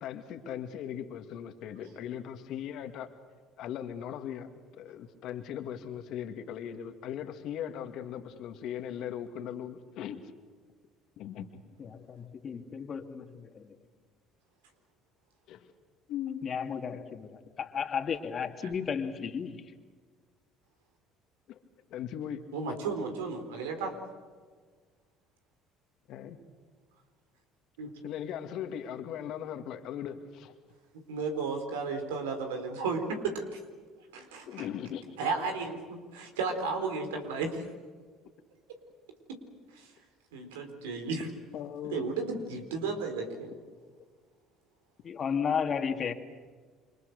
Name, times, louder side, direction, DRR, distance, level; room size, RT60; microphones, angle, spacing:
voice 1, 0.0-3.1 3.6-10.2 11.2-11.6 15.5-15.7 16.1-16.4 21.5-21.6 21.9-22.4 26.1-26.4 28.0-30.5 34.5-35.2 41.5-42.1, left 9 dB, 65° left, 2.3 m, -39 dB
voice 2, 11.8-13.7 16.4-19.6 45.0-46.1, left 6 dB, 45° left, 2.4 m, -33 dB
voice 3, 22.5-23.9 27.8-27.9 31.1-33.6 34.1-34.7 35.2-37.6 39.7-39.9 40.3-41.3 41.8-43.5, right 4 dB, 85° right, 4.2 m, -34 dB
29.0 x 25.5 x 6.8 m
hypercardioid pair, 70°, 0 cm